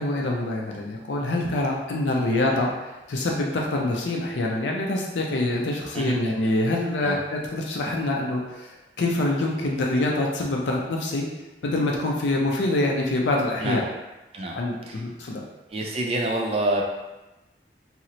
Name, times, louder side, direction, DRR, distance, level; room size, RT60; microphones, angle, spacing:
voice 1, 0.0-2.7 3.1-8.7 9.0-11.3 11.6-13.8 14.5-15.4, left 2 dB, 85° left, -1 dB, 0.5 m, -25 dB
voice 2, 15.7-16.8, right 1 dB, 35° right, 0 dB, 0.4 m, -26 dB
2.9 x 2.0 x 3.7 m, 1.0 s
head